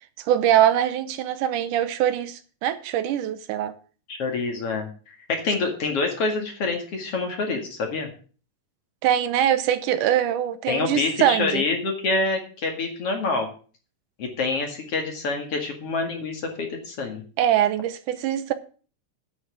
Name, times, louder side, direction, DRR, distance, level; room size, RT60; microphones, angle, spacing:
voice 1, 0.2-3.7 9.0-11.7 17.4-18.5, right 11 dB, 80° right, 2.3 m, -23 dB
voice 2, 4.1-8.1 10.7-13.5 14.2-17.2, left 3 dB, 50° left, 2.8 m, -26 dB
10.0 x 6.3 x 7.8 m
omnidirectional pair, 3.7 m